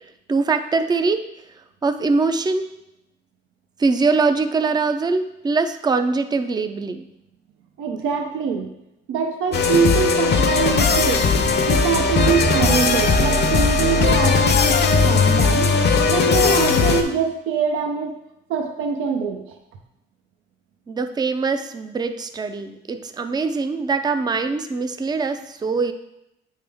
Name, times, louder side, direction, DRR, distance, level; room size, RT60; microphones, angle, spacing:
voice 1, 0.3-1.2 1.8-2.7 3.8-7.1 20.9-25.9, right 4 dB, 20° right, 9 dB, 0.4 m, -22 dB
voice 2, 7.8-8.7 9.1-11.2 11.7-15.7 16.1-18.1 18.5-19.4, right 6 dB, 85° right, 3 dB, 0.7 m, -23 dB
sound 1, 9.5-17.0, left 4 dB, 55° left, 0.7 m, -18 dB
sound 2, 10.9-16.6, right 3 dB, 40° right, 0.8 m, -36 dB
8.5 x 3.7 x 3.5 m, 0.87 s
cardioid pair, 90°, 20 cm